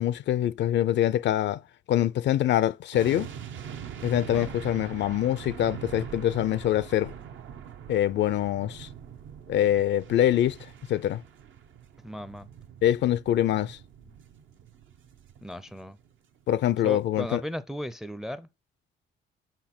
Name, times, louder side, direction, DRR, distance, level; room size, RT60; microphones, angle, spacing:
voice 1, 0.0-1.6 1.9-3.3 4.0-7.1 7.9-8.9 9.5-10.6 10.9-11.2 12.8-13.8 16.5-17.4, left 12 dB, 65° left, 0.4 m, -24 dB
sound 1, 2.9-16.1 16.4-16.5, right 8 dB, 75° right, 0.8 m, -43 dB
voice 2, 12.0-12.5 15.4-16.0 16.8-18.5, equal, ahead, 0.4 m, -36 dB
5.2 x 4.4 x 5.9 m
cardioid pair, 90°, 20 cm